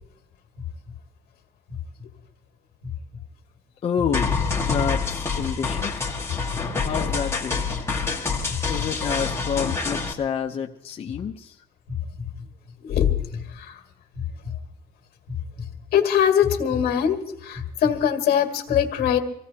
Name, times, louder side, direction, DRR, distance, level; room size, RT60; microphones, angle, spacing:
voice 1, 3.8-6.2 6.8-7.7 8.7-11.6, left 7 dB, 35° left, 0 dB, 0.7 m, -29 dB
sound 1, 4.1-10.1, left 5 dB, 15° left, 1.7 m, -26 dB
voice 2, 12.8-13.8 15.9-19.2, left 9 dB, 70° left, 4 dB, 2.0 m, -22 dB
24.5 x 16.0 x 2.9 m, 0.79 s
cardioid pair, 150°, 17 cm